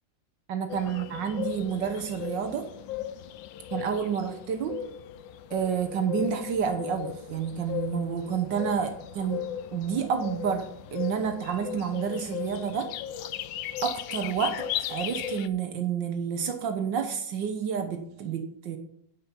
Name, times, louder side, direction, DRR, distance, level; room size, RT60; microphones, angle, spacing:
voice 1, 0.5-2.7 3.7-4.8 5.5-9.5 9.7-12.9 13.8-18.8, right 7 dB, 75° right, 7 dB, 1.5 m, -29 dB
sound 1, 0.7-15.5, left 10 dB, 85° left, 1.4 m, -37 dB
10.0 x 5.3 x 8.1 m, 0.70 s
omnidirectional pair, 2.0 m